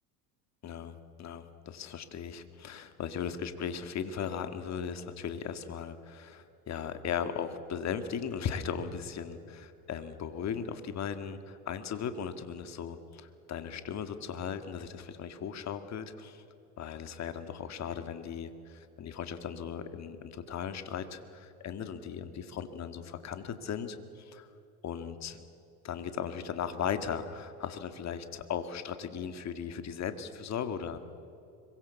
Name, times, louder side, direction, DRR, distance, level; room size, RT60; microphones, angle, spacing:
voice 1, 0.6-16.4 16.8-24.5 24.8-25.4 25.8-31.0, left 7 dB, 35° left, 9 dB, 2.1 m, -37 dB
25.5 x 23.5 x 7.1 m, 2.8 s
supercardioid pair, 115°, 48 cm